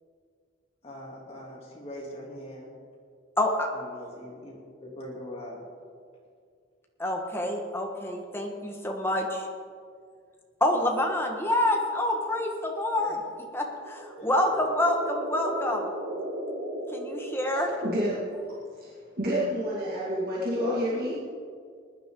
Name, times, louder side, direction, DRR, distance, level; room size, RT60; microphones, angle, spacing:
voice 1, 0.8-2.7 3.7-4.5 4.8-5.6 13.0-13.2 14.2-14.6, left 1 dB, 30° left, -3 dB, 3.1 m, -42 dB
voice 2, 3.4-3.7 7.0-9.4 10.6-13.2 13.5-15.9 16.9-17.7, left 1 dB, 10° left, 1 dB, 1.5 m, -27 dB
sound 1, 13.7-18.1, right 1 dB, 70° right, 2.1 m, -36 dB
voice 3, 17.8-18.4 18.8-18.9 19.2-21.2, equal, 50° right, -7 dB, 2.3 m, -28 dB
20.0 x 11.0 x 3.9 m, 2.1 s
head